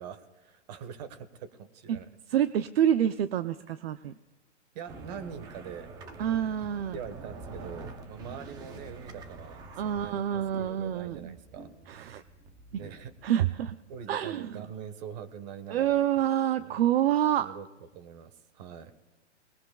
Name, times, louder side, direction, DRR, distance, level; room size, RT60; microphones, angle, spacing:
voice 1, 0.0-2.2 3.9-4.1 4.7-5.9 6.6-10.3 10.6-11.7 12.7-13.1 13.5-13.6 13.9-16.0 16.6-16.9 17.4-17.7 17.9-19.0, right 7 dB, 40° right, 11 dB, 1.3 m, -43 dB
voice 2, 2.3-4.1 6.2-7.0 9.8-11.3 11.9-12.2 13.2-13.8 14.1-14.5 15.7-17.5, right 10 dB, 60° right, 12 dB, 0.6 m, -27 dB
sound 1, 4.9-13.3, right 3 dB, 10° right, 0.5 m, -46 dB
28.0 x 21.0 x 2.3 m, 1.2 s
hypercardioid pair, 160°, 34 cm